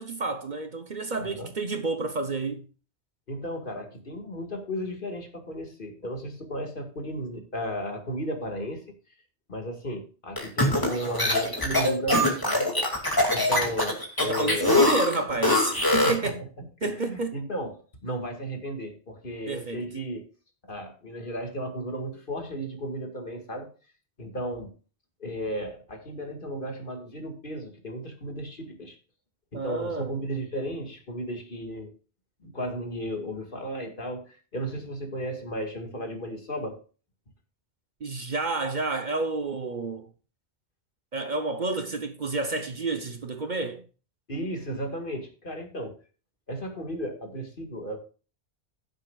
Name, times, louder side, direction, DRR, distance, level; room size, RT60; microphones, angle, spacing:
voice 1, 0.0-2.7 14.2-16.4 16.8-17.3 19.5-19.8 29.5-30.1 38.0-40.1 41.1-43.8, right 3 dB, 45° right, 0.9 m, -30 dB
voice 2, 3.3-8.8 9.5-12.7 13.3-14.7 15.9-20.3 20.6-23.7 24.2-24.7 25.2-29.0 29.5-31.9 32.4-36.8 44.3-46.0 46.5-48.0, equal, 50° left, 2.2 m, -34 dB
sound 1, 10.4-16.3, left 2 dB, 20° left, 2.4 m, -23 dB
15.5 x 7.7 x 2.4 m
omnidirectional pair, 1.1 m